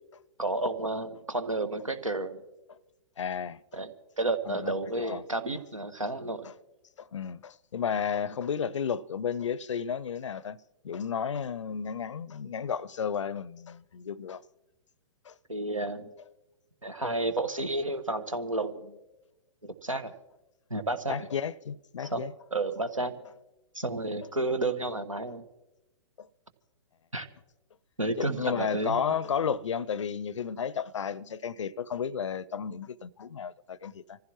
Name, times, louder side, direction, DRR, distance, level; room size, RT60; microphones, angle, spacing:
voice 1, 0.4-2.4 3.7-6.5 15.5-16.1 16.8-19.0 19.6-20.1 20.7-21.2 22.0-22.2 22.5-23.2 23.7-25.4 27.1-27.3 28.0-29.0, right 2 dB, 90° right, 1.3 m, -31 dB
voice 2, 3.2-3.6 4.5-4.7 5.0-5.2 7.0-10.6 10.8-14.4 15.3-15.4 21.1-22.3 26.2-26.3 28.2-34.2, left 7 dB, 65° left, 0.5 m, -33 dB
25.5 x 15.5 x 3.0 m
figure-of-eight pair, 115°, 16 cm